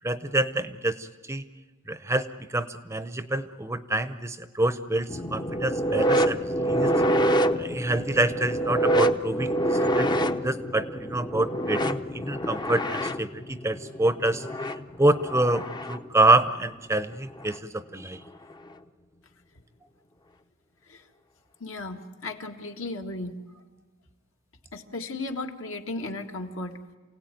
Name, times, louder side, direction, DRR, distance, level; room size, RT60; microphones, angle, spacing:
voice 1, 0.0-1.4 1.9-6.9 7.6-14.5 15.0-18.2, right 2 dB, 15° right, 11 dB, 0.7 m, -27 dB
sound 1, 5.1-16.1 17.4-17.6 18.5-18.6, right 1 dB, 20° left, 0.7 m, -26 dB
voice 2, 21.6-23.4 24.7-26.8, left 2 dB, 70° left, 3 dB, 1.8 m, -35 dB
28.0 x 17.5 x 9.2 m, 1.3 s
head